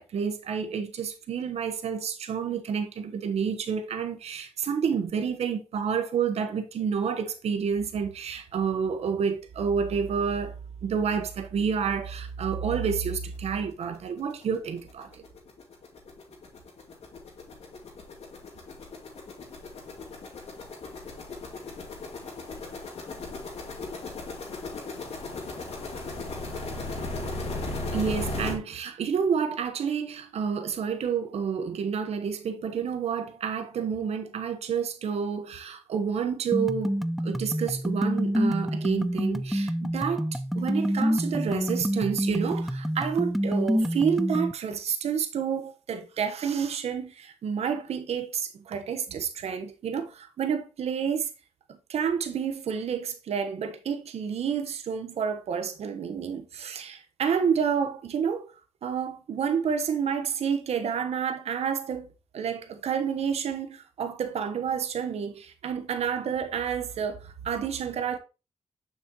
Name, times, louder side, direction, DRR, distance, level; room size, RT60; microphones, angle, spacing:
voice 1, 0.0-10.5 10.8-15.2 27.9-51.3 51.7-58.5 58.8-68.2, right 7 dB, 70° right, 1.1 m, -29 dB
sound 1, 13.1-13.2 13.6-13.7 13.9-28.5, left 2 dB, 70° left, 2.5 m, -36 dB
sound 2, 36.5-44.5, equal, ahead, 0.5 m, -27 dB
6.8 x 6.4 x 3.0 m
cardioid pair, 60°, 11 cm